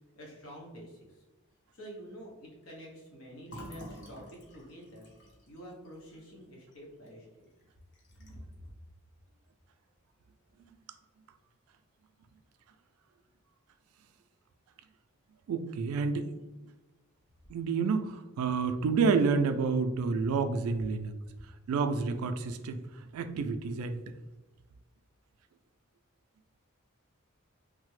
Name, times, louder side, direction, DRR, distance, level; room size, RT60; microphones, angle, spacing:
voice 1, 0.2-1.2 1.7-5.1 5.5-7.5 8.3-8.7, equal, 90° left, -2 dB, 0.9 m, -48 dB
Fill (with liquid), 3.5-7.1 7.5-7.6 7.9-8.5, left 1 dB, 55° left, 0.7 m, -50 dB
voice 2, 15.5-16.3 17.5-21.2 21.7-22.8 23.1-24.0, right 5 dB, 85° right, 9 dB, 0.3 m, -29 dB
3.2 x 2.0 x 3.1 m, 1.1 s
head